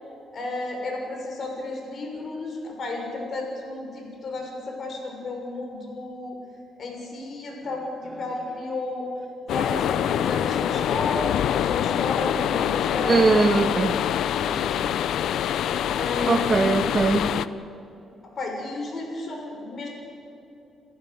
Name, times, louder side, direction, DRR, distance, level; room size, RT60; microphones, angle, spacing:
voice 1, 0.3-6.3 6.8-9.1 9.4-13.2 14.3-14.9 16.0-16.8 18.4-19.9, left 2 dB, 50° left, 6.7 m, -32 dB
sound 1, 9.5-17.5, left 10 dB, 75° left, 0.6 m, -25 dB
voice 2, 13.1-14.0 16.3-17.3, right 4 dB, 35° right, 1.7 m, -21 dB
29.0 x 14.5 x 8.1 m
cardioid pair, 90°, 0 cm